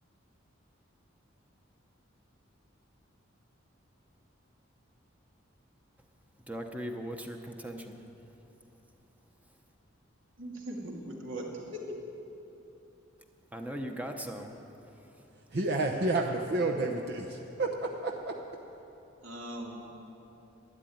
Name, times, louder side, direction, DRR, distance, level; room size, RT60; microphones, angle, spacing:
voice 1, 6.5-8.0 13.5-14.6, equal, 5° right, 3 dB, 0.9 m, -38 dB
voice 2, 10.4-12.0 19.2-19.9, right 1 dB, 70° right, -1 dB, 2.6 m, -40 dB
voice 3, 15.5-18.4, right 2 dB, 55° right, 2 dB, 0.8 m, -30 dB
12.5 x 10.5 x 9.4 m, 3.0 s
head